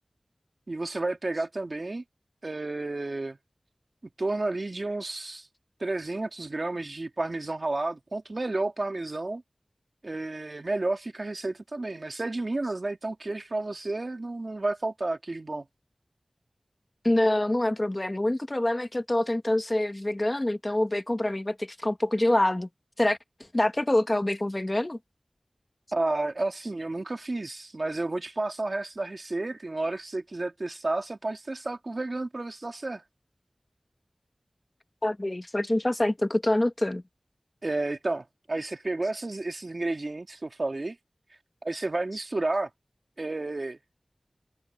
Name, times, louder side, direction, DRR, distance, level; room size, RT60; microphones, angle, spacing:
voice 1, 0.7-2.0 2.4-3.4 4.2-5.5 5.8-9.4 10.0-15.7 25.9-33.0 37.6-41.0 41.6-42.7 43.2-43.8, right 2 dB, 60° right, 1.9 m, -31 dB
voice 2, 17.0-22.7 23.0-23.2 23.5-25.0 35.0-37.0, left 1 dB, 30° left, 1.1 m, -26 dB
wide cardioid pair, 45°, 0 cm